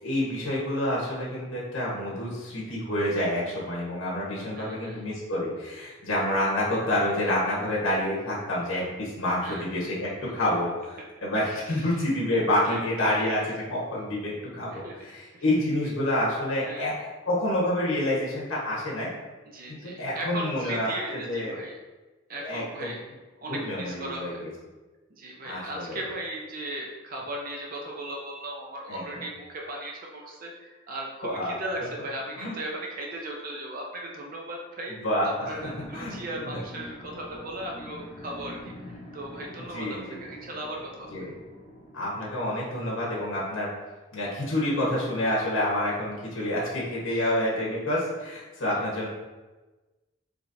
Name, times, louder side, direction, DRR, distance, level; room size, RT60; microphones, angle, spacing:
voice 1, 0.0-10.7 11.2-19.1 19.8-20.9 21.2-21.6 22.4-22.9 23.5-24.3 25.4-26.0 28.9-29.0 31.2-31.5 32.4-32.5 35.0-36.1 36.5-36.6 39.7-40.2 41.1-41.3 41.9-43.7 44.1-49.1, left 1 dB, 85° left, -5 dB, 1.3 m, -28 dB
voice 2, 4.5-5.0 9.4-9.7 10.3-10.6 11.5-13.3 14.7-15.0 15.3-15.6 16.7-16.9 19.5-21.8 22.3-23.0 23.4-24.4 25.1-35.0 35.2-41.2 46.4-46.7 47.1-47.2 48.7-48.8, right 1 dB, 45° right, -1 dB, 0.6 m, -37 dB
sound 1, 35.5-43.6, left 1 dB, 35° left, 0.7 m, -45 dB
5.1 x 3.2 x 2.6 m, 1.2 s
head